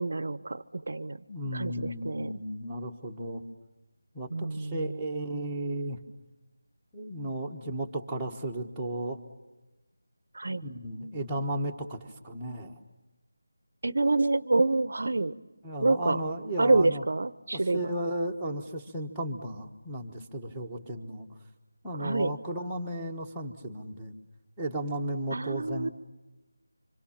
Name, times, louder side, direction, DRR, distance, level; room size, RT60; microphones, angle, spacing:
voice 1, 0.0-1.2 1.5-2.3 4.3-4.8 10.3-10.6 13.8-15.3 15.8-16.2 16.6-17.8 22.0-22.3 25.3-25.9, right 2 dB, 55° right, 17 dB, 0.9 m, -27 dB
voice 2, 1.3-3.4 4.1-6.0 6.9-9.2 10.5-12.8 15.6-17.0 17.5-21.3 21.8-24.1 24.6-25.9, right 1 dB, ahead, -6 dB, 1.3 m, -34 dB
26.5 x 25.5 x 7.2 m, 1.0 s
figure-of-eight pair, 175°, 0 cm